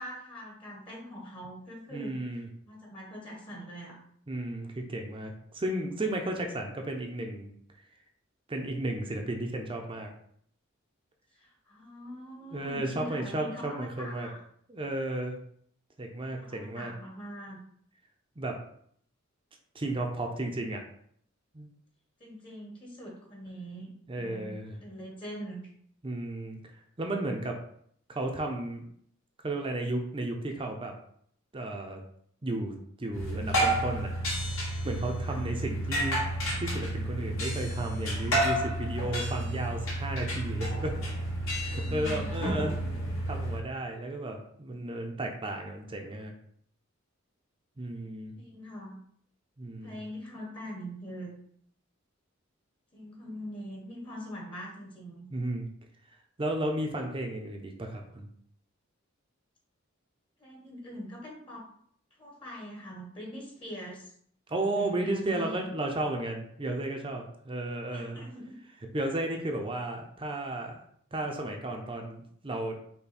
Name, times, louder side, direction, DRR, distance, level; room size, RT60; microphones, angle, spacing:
voice 1, 0.0-2.2 2.6-4.0 11.3-14.4 16.2-17.6 22.2-23.9 24.2-25.7 35.3-35.5 41.7-42.4 48.4-49.0 49.8-51.4 52.9-55.3 60.4-61.7 62.2-64.1 64.6-65.7 67.9-68.6, equal, 25° left, -1 dB, 1.1 m, -43 dB
voice 2, 1.9-2.5 4.3-7.5 8.5-10.1 12.5-14.3 14.7-15.4 16.0-16.9 18.4-18.6 19.7-20.8 21.5-21.7 24.1-24.8 26.0-26.6 27.0-27.6 28.1-28.8 29.4-30.9 31.5-32.0 32.4-34.1 34.8-36.2 36.6-41.0 41.6-42.8 43.2-46.3 47.8-48.4 49.6-50.0 55.3-55.7 56.4-58.3 64.5-68.2 68.9-70.8 71.1-72.8, right 1 dB, 25° right, 2 dB, 0.6 m, -33 dB
sound 1, 33.1-43.6, right 1 dB, 75° left, 1.8 m, -31 dB
5.6 x 2.2 x 4.2 m, 0.64 s
head